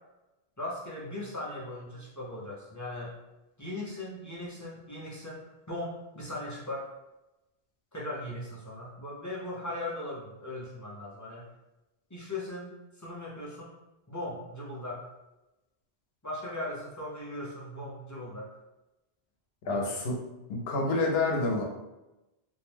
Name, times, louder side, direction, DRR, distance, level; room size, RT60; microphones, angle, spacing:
voice 1, 0.6-3.1 3.6-5.4 5.7-6.9 7.9-11.5 12.1-13.7 14.1-15.0 16.2-18.5 19.7-19.9, left 1 dB, 25° left, -6 dB, 0.4 m, -38 dB
voice 2, 19.7-20.2 20.5-21.6, left 2 dB, 75° left, 0 dB, 0.8 m, -28 dB
2.5 x 2.1 x 3.2 m, 0.98 s
omnidirectional pair, 1.1 m